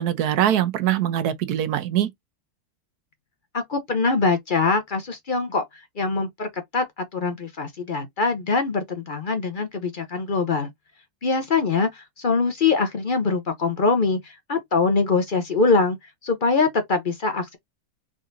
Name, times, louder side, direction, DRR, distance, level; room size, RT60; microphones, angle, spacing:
voice 1, 0.0-2.1, right 11 dB, 85° right, 1.2 m, -22 dB
voice 2, 3.5-5.6 6.0-10.7 11.2-16.0 16.2-17.6, left 4 dB, 45° left, 0.7 m, -23 dB
4.1 x 3.7 x 2.5 m
omnidirectional pair, 1.6 m